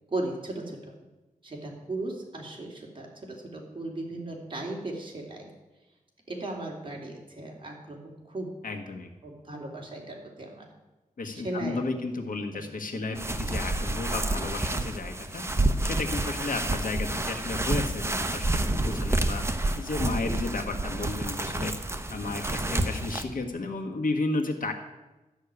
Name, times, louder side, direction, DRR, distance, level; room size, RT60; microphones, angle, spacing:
voice 1, 0.1-1.0 1.4-5.5 6.3-8.5 9.2-10.7 11.3-11.8 13.1-13.2 18.7-19.0 22.2-22.4, right 2 dB, 40° right, -2 dB, 3.3 m, -36 dB
voice 2, 8.6-9.1 11.2-15.4 15.8-19.4 19.8-21.8 22.1-24.7, left 3 dB, 80° left, 3 dB, 1.6 m, -33 dB
sound 1, 13.1-23.2, right 2 dB, 20° right, 0.9 m, -29 dB
13.0 x 6.6 x 9.7 m, 1.1 s
wide cardioid pair, 120°, 14 cm